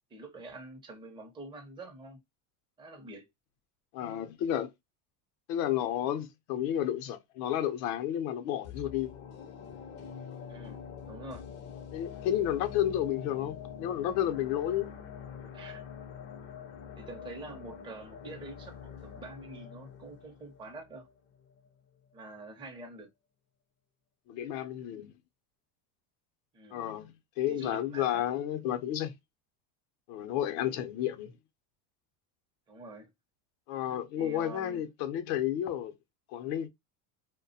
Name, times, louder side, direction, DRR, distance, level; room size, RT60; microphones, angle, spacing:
voice 1, 0.0-2.2 2.8-3.3 10.5-11.5 15.5-15.8 16.4-16.6 16.9-21.1 22.1-23.1 26.5-26.8 27.5-28.2 30.6-30.9 32.7-33.1 34.1-34.9, right 2 dB, 10° right, 0.6 m, -46 dB
voice 2, 3.9-4.7 5.5-9.1 11.9-14.9 24.3-25.1 26.7-29.1 30.1-31.3 33.7-35.9 36.3-36.7, left 11 dB, 70° left, 0.7 m, -31 dB
sound 1, 8.6-21.7 22.1-22.2, left 7 dB, 35° left, 0.5 m, -45 dB
2.3 x 2.2 x 2.6 m
supercardioid pair, 110°, 47 cm